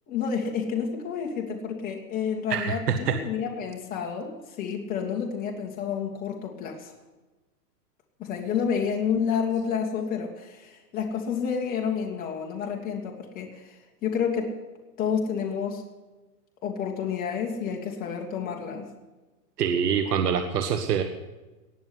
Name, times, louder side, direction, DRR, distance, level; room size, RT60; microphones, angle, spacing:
voice 1, 0.1-6.9 8.2-14.5 15.0-15.8 16.6-18.9, left 6 dB, 20° left, 0 dB, 2.3 m, -30 dB
voice 2, 2.5-3.2 19.6-21.0, right 7 dB, 70° right, 7 dB, 1.7 m, -25 dB
19.5 x 7.4 x 9.6 m, 1.1 s
hypercardioid pair, 160°, 48 cm